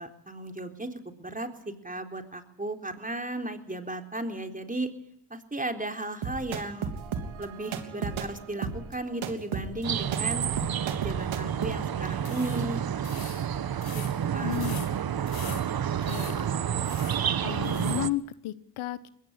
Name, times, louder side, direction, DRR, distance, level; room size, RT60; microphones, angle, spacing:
voice 1, 0.0-1.5 1.8-4.9 5.3-6.9 7.4-10.5 11.0-12.8 14.3-14.6, right 1 dB, 15° right, 5 dB, 4.0 m, -35 dB
sound 1, 6.2-11.7, right 6 dB, 70° right, 3.3 m, -34 dB
sound 2, 9.8-18.1, right 9 dB, 45° right, 1.2 m, -29 dB
sound 3, 12.2-18.1, left 5 dB, 45° left, 6.5 m, -46 dB
voice 2, 14.4-14.9 15.5-15.6 16.0-16.5 17.4-19.1, left 14 dB, 75° left, 15 dB, 1.3 m, -33 dB
21.0 x 17.5 x 8.3 m, 0.74 s
supercardioid pair, 65°, 49 cm